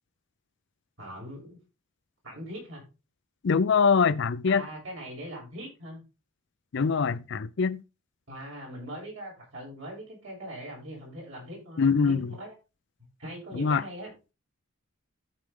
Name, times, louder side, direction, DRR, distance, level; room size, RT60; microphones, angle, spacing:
voice 1, 1.0-1.6 2.2-2.9 4.5-6.0 8.3-12.5 13.2-14.1, equal, 70° right, 6.5 m, -41 dB
voice 2, 3.4-4.7 6.7-7.8 11.8-12.3 13.5-13.8, left 5 dB, 55° left, 0.4 m, -23 dB
14.0 x 4.9 x 3.6 m
head